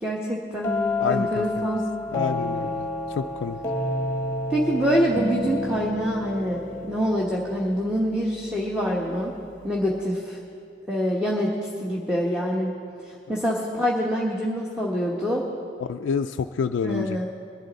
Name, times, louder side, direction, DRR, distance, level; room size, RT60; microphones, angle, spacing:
voice 1, 0.0-0.8 1.1-1.9 4.5-9.4 9.6-10.4 10.9-11.5 11.8-12.7 13.3-15.4 16.8-17.3, equal, 5° right, -4 dB, 1.1 m, -25 dB
sound 1, 0.6-8.4, left 2 dB, 10° left, 1.3 m, -30 dB
voice 2, 1.0-1.7 2.1-2.9 3.2-3.6 15.8-17.3, left 6 dB, 80° left, 6 dB, 0.3 m, -28 dB
21.5 x 11.5 x 4.0 m, 2.5 s
head